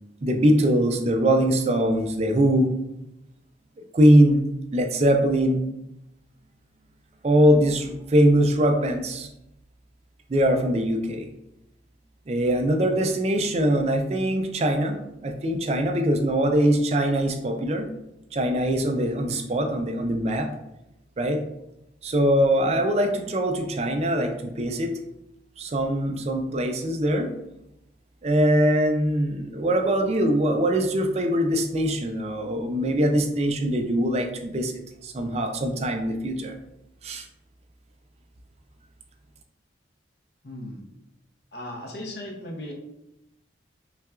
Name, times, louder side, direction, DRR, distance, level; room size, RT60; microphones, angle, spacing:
voice 1, 0.2-2.7 3.9-4.4 4.7-5.6 7.2-9.3 10.3-11.3 12.3-17.9 18.3-20.5 21.2-21.4 22.0-24.9 25.6-27.3 28.2-34.7 35.0-36.5 37.0-37.3, equal, 35° right, 4 dB, 0.4 m, -22 dB
voice 2, 40.4-40.8 41.5-42.7, left 1 dB, 60° left, 1 dB, 0.7 m, -36 dB
5.6 x 2.3 x 2.3 m, 0.88 s
head